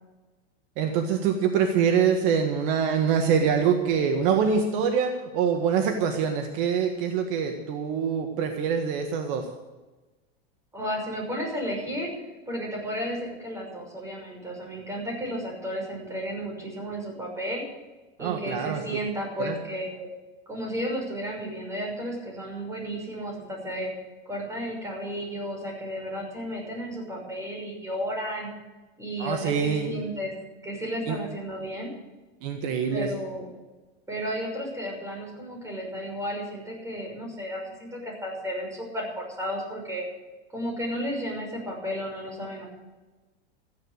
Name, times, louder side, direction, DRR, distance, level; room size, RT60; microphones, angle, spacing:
voice 1, 0.8-9.5 18.2-18.8 19.4-19.6 29.2-29.9 31.1-31.2 32.4-33.1, right 7 dB, 55° right, 4 dB, 1.7 m, -24 dB
voice 2, 10.7-12.1 12.5-17.6 18.2-20.1 20.5-23.9 24.3-28.5 29.0-30.3 30.6-31.9 32.9-33.5 34.1-40.1 40.5-42.6, equal, 10° right, -1 dB, 5.9 m, -33 dB
15.0 x 10.5 x 6.6 m, 1.2 s
supercardioid pair, 135°, 31 cm